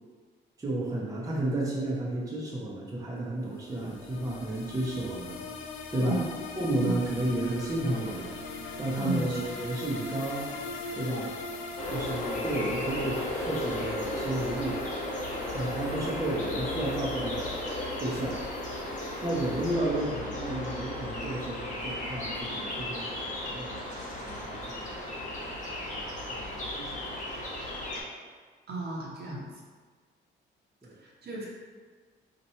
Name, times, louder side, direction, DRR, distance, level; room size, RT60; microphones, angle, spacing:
voice 1, 0.6-5.4 5.9-6.2 6.6-8.4 8.8-10.5 10.9-11.4 11.9-14.8 15.5-17.5 18.0-18.4 19.2-23.8 24.2-25.1 25.9-27.4 30.8-31.0, right 1 dB, 15° right, -5 dB, 0.8 m, -32 dB
sound 1, 3.5-19.7, left 3 dB, 90° left, 0.5 m, -41 dB
voice 2, 9.0-9.4 28.7-29.5 31.0-31.5, right 1 dB, 55° right, -4 dB, 1.0 m, -34 dB
sound 2, 11.8-28.0, left 1 dB, 40° left, 0.9 m, -35 dB
2.8 x 2.5 x 4.2 m, 1.5 s
cardioid pair, 90°, 20 cm